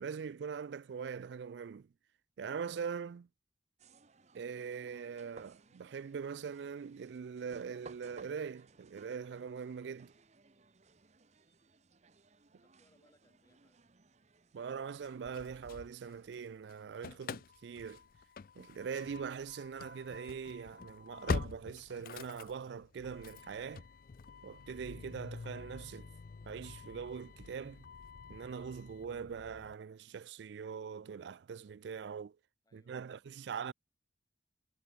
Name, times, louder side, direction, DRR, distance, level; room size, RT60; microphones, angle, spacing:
voice 1, 0.0-1.9 2.4-3.3 4.3-10.1 14.5-18.0 18.6-23.8 24.4-26.1 26.5-27.9 28.3-32.4 32.7-33.7, right 6 dB, 70° right, 0.4 m, -42 dB
sound 1, 3.8-16.4, right 3 dB, 40° right, 1.0 m, -61 dB
voice 2, 12.5-13.9 32.6-33.7, left 1 dB, 20° left, 6.3 m, -74 dB
Engine starting / Slam, 15.0-16.4 16.7-29.7, left 4 dB, 50° left, 0.4 m, -45 dB
head